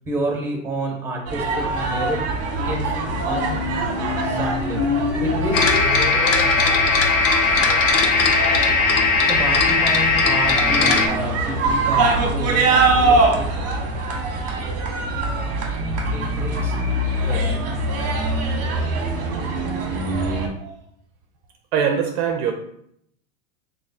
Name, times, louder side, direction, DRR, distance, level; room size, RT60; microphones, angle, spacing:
voice 1, 0.1-2.3 2.6-3.7 4.2-4.8 5.2-5.6 9.2-13.5 16.1-16.7 17.2-17.7, right 1 dB, 5° right, 0 dB, 1.0 m, -29 dB
sound 1, 1.3-20.5, right 2 dB, 35° right, 0.9 m, -23 dB
sound 2, 3.1-9.1, left 5 dB, 75° left, 0.9 m, -29 dB
sound 3, 5.5-11.1, left 4 dB, 35° left, 0.5 m, -18 dB
voice 2, 21.7-22.5, right 7 dB, 55° right, 4 dB, 0.5 m, -22 dB
3.0 x 2.3 x 4.1 m, 0.73 s
hypercardioid pair, 115°, 41 cm